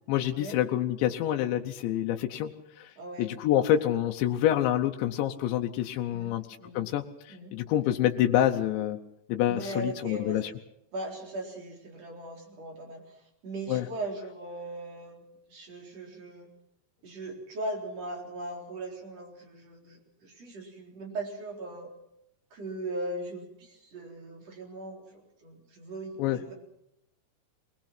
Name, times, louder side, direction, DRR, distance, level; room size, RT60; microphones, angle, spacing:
voice 1, 0.0-6.4 6.7-9.0 9.3-10.5 13.7-13.9 26.2-26.4, left 12 dB, 85° left, 4 dB, 3.2 m, -27 dB
voice 2, 3.0-3.3 6.1-6.8 7.3-7.6 9.5-10.4 10.9-15.2 15.5-16.5 17.0-21.9 22.5-26.5, right 2 dB, 35° right, 0 dB, 4.8 m, -39 dB
24.5 x 19.5 x 5.9 m, 0.81 s
omnidirectional pair, 5.1 m